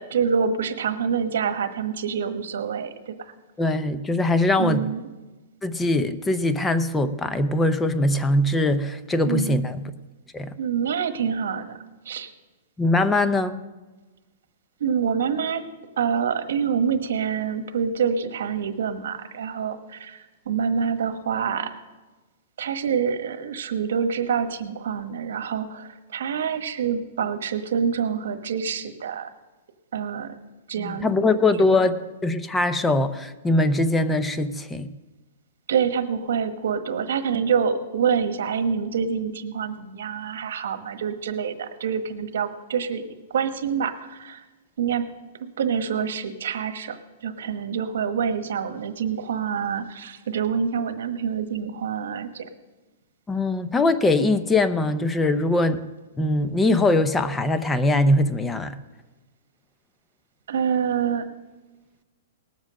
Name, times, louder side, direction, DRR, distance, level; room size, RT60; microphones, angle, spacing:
voice 1, 0.0-3.3 4.6-5.0 9.2-9.6 10.6-11.8 12.0-12.3 14.8-15.6 16.0-21.7 22.6-29.3 29.9-30.3 30.7-31.9 35.7-43.0 43.3-44.4 44.8-45.1 45.4-52.5 60.5-61.3, right 7 dB, 75° right, 8 dB, 1.3 m, -26 dB
voice 2, 3.6-4.9 5.6-9.9 10.3-10.5 12.8-13.6 30.8-32.0 32.2-34.9 53.3-55.8 56.2-58.8, left 2 dB, 10° left, 11 dB, 0.5 m, -22 dB
19.0 x 7.5 x 6.4 m, 1.2 s
hypercardioid pair, 170°, 0 cm